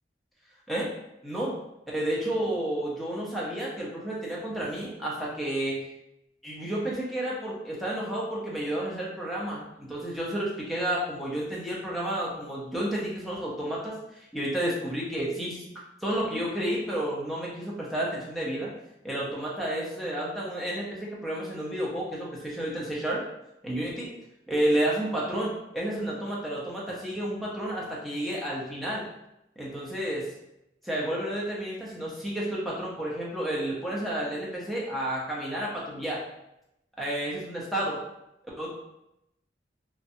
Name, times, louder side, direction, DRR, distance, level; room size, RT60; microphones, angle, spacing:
voice 1, 1.2-1.6 1.9-5.8 6.4-15.6 16.0-18.7 19.0-23.2 23.6-24.1 24.5-29.0 29.6-30.3 30.8-36.2 37.0-38.0 38.6-38.7, right 1 dB, ahead, -6 dB, 0.5 m, -31 dB
2.5 x 2.1 x 2.6 m, 0.86 s
head